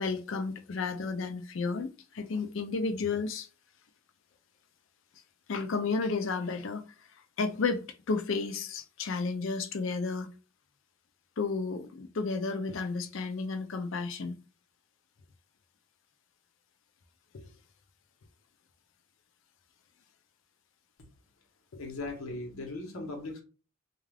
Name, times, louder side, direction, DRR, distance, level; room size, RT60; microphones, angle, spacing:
voice 1, 0.0-3.5 5.5-6.9 7.4-10.3 11.4-14.4 17.3-17.5 21.7-21.8, left 4 dB, 60° left, 0.5 m, -32 dB
voice 2, 21.8-23.4, left 2 dB, 85° left, 1.0 m, -38 dB
2.4 x 2.4 x 3.2 m
head